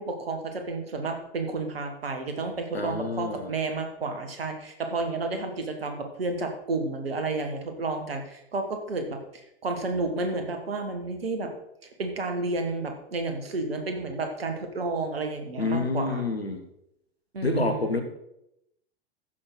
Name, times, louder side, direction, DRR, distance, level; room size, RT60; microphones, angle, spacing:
voice 1, 0.0-11.5 12.0-16.2 17.3-18.0, right 3 dB, 75° right, 5 dB, 1.8 m, -31 dB
voice 2, 2.7-3.5 15.6-16.6 17.4-18.0, left 3 dB, 90° left, 6 dB, 1.4 m, -28 dB
14.5 x 6.2 x 4.1 m, 0.81 s
figure-of-eight pair, 90°, 30 cm